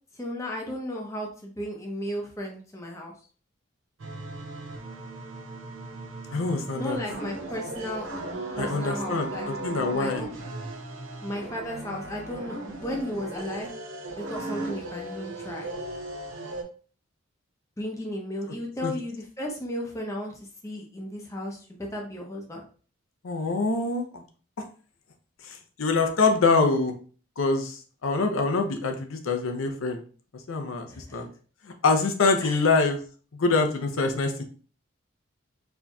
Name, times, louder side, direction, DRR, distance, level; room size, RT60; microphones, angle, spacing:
voice 1, 0.2-3.1 6.7-8.1 8.6-9.5 9.9-10.3 11.2-13.7 14.2-15.7 17.8-20.3 20.6-22.6 30.9-31.2 32.4-32.6, equal, 15° left, -1 dB, 0.7 m, -34 dB
sound 1, 4.0-16.6, right 2 dB, 75° right, 0.7 m, -37 dB
voice 2, 6.3-7.0 8.6-10.2 18.8-18.9 23.2-24.2 25.4-26.9 27.4-30.0 30.5-31.3 31.8-33.0 33.4-34.4, left 3 dB, 85° left, 5 dB, 0.6 m, -25 dB
4.3 x 2.8 x 2.3 m, 0.40 s
head